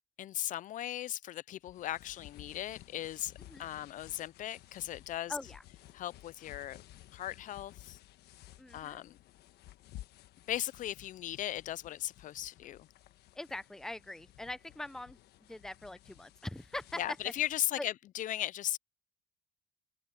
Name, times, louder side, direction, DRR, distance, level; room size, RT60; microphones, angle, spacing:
voice 1, 0.2-3.3 3.6-5.3 5.9-6.8 7.1-8.0 8.7-9.2 10.5-12.9 17.0-18.8, left 12 dB, 50° left, 0.4 m, -37 dB
sound 1, 1.6-17.6, left 14 dB, 75° left, 1.3 m, -55 dB
voice 2, 5.3-5.6 8.6-9.0 13.3-15.2 15.5-17.3 17.8-17.9, left 1 dB, 5° left, 0.6 m, -42 dB
cardioid pair, 110°, 17 cm